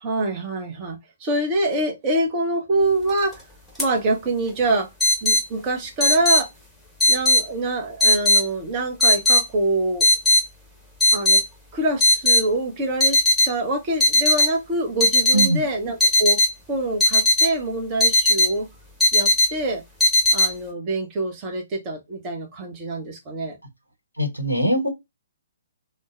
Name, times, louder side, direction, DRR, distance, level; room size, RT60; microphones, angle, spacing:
voice 1, 0.0-3.4 3.8-4.9 5.2-6.5 7.1-10.1 11.1-11.4 11.7-13.2 13.4-16.4 16.7-18.7 19.1-19.8 20.3-23.6, right 2 dB, 25° right, 0.8 m, -25 dB
sound 1, 3.1-3.3 3.8-3.9 5.0-5.4 6.0-6.4 7.0-7.4 8.0-8.4 9.0-9.4 10.0-10.4 11.0-11.4 12.0-12.4 13.0-13.5 14.0-14.5 15.0-15.5 16.0-16.5 17.0-17.5 18.0-18.5 19.0-19.5 20.0-20.5, left 2 dB, ahead, 1.0 m, -17 dB
voice 2, 24.2-24.9, right 1 dB, 85° right, 0.9 m, -21 dB
3.8 x 2.1 x 2.3 m
figure-of-eight pair, 125°, 0 cm